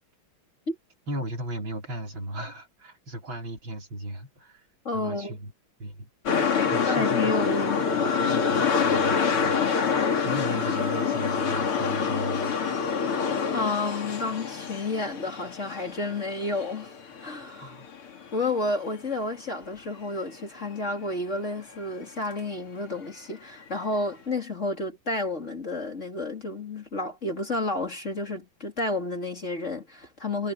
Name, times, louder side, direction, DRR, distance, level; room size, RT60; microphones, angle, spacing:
voice 1, 1.1-4.6 4.9-5.5 5.8-6.1 6.7-7.4 7.9-9.7 10.2-12.6 17.6-17.9, right 1 dB, 65° right, 5.5 m, -36 dB
voice 2, 4.8-5.4 6.9-8.2 12.9-13.2 13.5-16.9 17.2-17.7 18.3-30.5, left 2 dB, 35° left, 3.2 m, -31 dB
sound 1, 6.3-18.3 18.6-18.7, left 6 dB, 85° left, 3.6 m, -26 dB
omnidirectional pair, 2.3 m